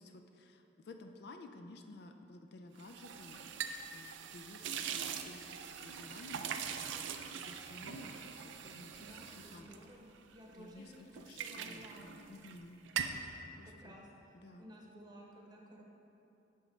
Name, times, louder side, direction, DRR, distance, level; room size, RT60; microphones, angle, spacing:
voice 1, 0.0-3.5 3.9-10.0 10.5-13.2 13.6-14.0 14.3-14.7, left 2 dB, 60° left, 5 dB, 0.4 m, -54 dB
sound 1, 2.8-10.6 10.9-12.6 12.8-13.3, right 7 dB, 80° right, 0.4 m, -42 dB
voice 2, 9.0-12.2 13.6-15.8, equal, 20° right, -2 dB, 0.9 m, -55 dB
11.0 x 5.0 x 3.2 m, 2.9 s
head